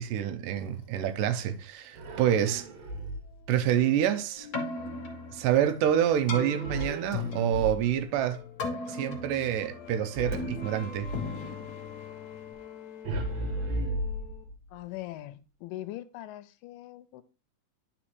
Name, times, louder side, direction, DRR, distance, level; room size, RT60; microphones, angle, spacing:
voice 1, 0.0-2.7 3.5-4.5 5.3-8.4 8.9-11.1, right 10 dB, 90° right, 2.3 m, -27 dB
sound 1, 0.6-7.7 8.0-14.4, left 7 dB, 65° left, 2.2 m, -50 dB
sound 2, 1.9-3.5 6.6-8.2 10.1-11.3 13.0-14.7, right 1 dB, 65° right, 2.0 m, -35 dB
Keyboard (musical), 4.4-12.5, left 3 dB, 50° left, 1.2 m, -38 dB
voice 2, 14.7-17.2, left 15 dB, 90° left, 2.3 m, -41 dB
11.0 x 4.3 x 3.0 m
omnidirectional pair, 3.8 m